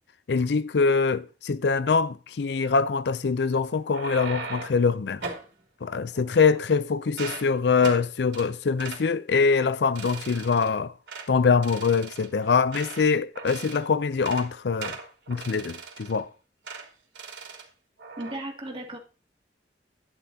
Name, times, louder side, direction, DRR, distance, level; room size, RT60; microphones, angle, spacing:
voice 1, 0.3-5.2 5.8-10.9 11.3-15.0 15.3-16.3, left 5 dB, 65° left, 0.5 m, -24 dB
sound 1, 3.7-4.8 5.2-5.5 6.1-6.8 7.1-7.5 7.8-8.0 8.3-8.5 8.8-9.0 9.5-9.7 10.0-10.7 11.1-11.3 11.6-13.1 13.4-13.8 14.1-14.5 14.8-16.2 16.7-16.9 17.2-17.7 18.0-18.4, right 4 dB, 80° right, 3.2 m, -39 dB
voice 2, 18.2-19.0, right 1 dB, 30° right, 2.3 m, -35 dB
11.5 x 10.5 x 2.8 m
head